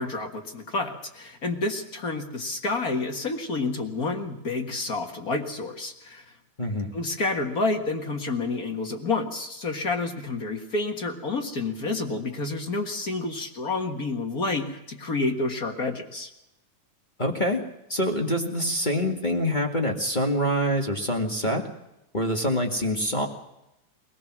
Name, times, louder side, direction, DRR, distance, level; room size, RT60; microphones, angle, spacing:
voice 1, 0.0-6.3 6.9-16.3, left 3 dB, 35° left, 4 dB, 1.6 m, -29 dB
voice 2, 6.6-6.9 17.2-17.6 17.9-21.6 22.1-23.3, equal, 20° left, 0 dB, 1.5 m, -25 dB
23.5 x 19.0 x 6.1 m, 0.89 s
omnidirectional pair, 3.6 m